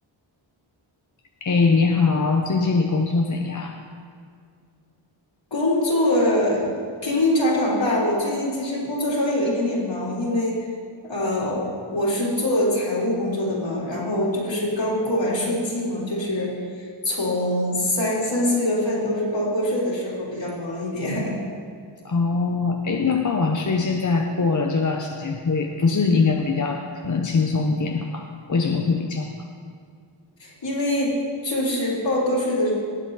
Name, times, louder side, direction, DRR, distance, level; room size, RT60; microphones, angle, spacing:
voice 1, 1.4-3.8 22.0-29.3, left 4 dB, 40° left, 2 dB, 0.8 m, -22 dB
voice 2, 5.5-10.6 11.0-11.6 11.9-21.4 30.4-31.2 31.4-32.7, left 1 dB, 65° left, -6 dB, 3.5 m, -24 dB
18.5 x 7.8 x 4.0 m, 2.2 s
wide cardioid pair, 80°, 48 cm